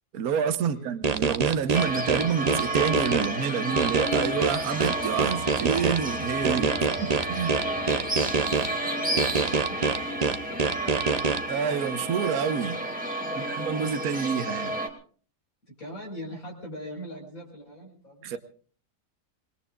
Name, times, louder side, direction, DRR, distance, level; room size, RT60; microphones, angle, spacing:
voice 1, 0.1-7.6 11.5-12.8 13.5-14.7 18.2-18.4, right 7 dB, 70° right, 1.4 m, -28 dB
sound 1, 1.0-3.3 3.8-6.0 6.4-8.7 9.2-11.4, right 5 dB, 40° right, 0.6 m, -25 dB
sound 2, 1.7-14.9, right 1 dB, 5° right, 2.4 m, -31 dB
sound 3, 3.9-10.2 10.6-10.7, left 5 dB, 15° left, 2.0 m, -47 dB
voice 2, 7.6-12.0 13.2-13.8 15.7-18.4, equal, 60° left, 5.4 m, -43 dB
26.0 x 21.0 x 2.5 m
omnidirectional pair, 1.7 m